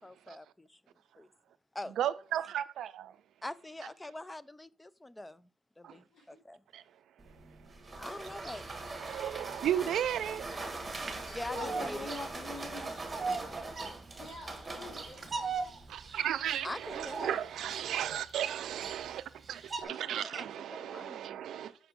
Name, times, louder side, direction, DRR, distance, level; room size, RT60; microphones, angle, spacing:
voice 1, 0.0-0.8 1.2-1.3 1.7-1.9 3.4-5.5 5.8-6.6 8.0-8.8 10.7-10.8 11.3-12.1 13.5-13.6 16.6-17.4 19.8-21.4, left 1 dB, 10° left, 0.3 m, -44 dB
voice 2, 2.0-3.1 5.8-5.9 6.7-6.8 8.9-10.5 15.9-21.7, right 10 dB, 85° right, 0.3 m, -34 dB
sound 1, 7.2-15.9, right 2 dB, 20° right, 1.6 m, -42 dB
Bird vocalization bird call bird song, 8.3-19.8, right 4 dB, 35° right, 1.2 m, -42 dB
voice 3, 10.5-12.9 17.9-18.2 21.5-21.7, left 3 dB, 85° left, 2.1 m, -44 dB
voice 4, 14.2-15.8, left 1 dB, 60° left, 4.2 m, -52 dB
6.0 x 4.5 x 5.0 m
cardioid pair, 110°, 0 cm